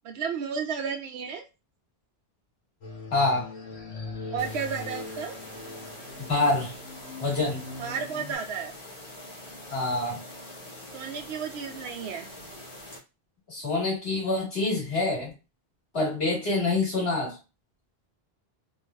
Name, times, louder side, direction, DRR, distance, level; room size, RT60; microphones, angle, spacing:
voice 1, 0.0-1.5 4.3-5.4 7.8-8.7 10.9-12.3, right 6 dB, 85° right, 0.9 m, -33 dB
sound 1, 2.8-8.4, left 3 dB, 90° left, 1.2 m, -41 dB
voice 2, 3.1-3.5 6.2-6.7 7.2-7.7 9.7-10.2 13.5-15.3 15.9-17.4, left 2 dB, 75° left, 1.9 m, -26 dB
sound 2, 4.4-13.0, left 1 dB, 60° left, 1.4 m, -44 dB
3.2 x 3.1 x 2.3 m
omnidirectional pair, 1.1 m